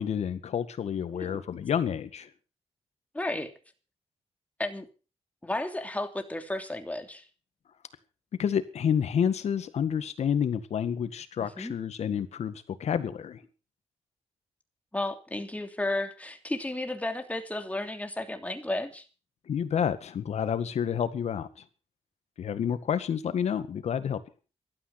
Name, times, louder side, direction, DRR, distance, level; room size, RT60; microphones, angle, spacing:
voice 1, 0.0-2.3 8.4-13.4 19.5-21.5 22.4-24.2, left 8 dB, 80° left, 12 dB, 1.9 m, -29 dB
voice 2, 3.1-3.5 4.6-4.9 5.4-7.2 11.4-11.7 14.9-19.0, left 1 dB, 15° left, 6 dB, 3.0 m, -33 dB
15.5 x 13.0 x 6.0 m, 0.36 s
cardioid pair, 80°, 11 cm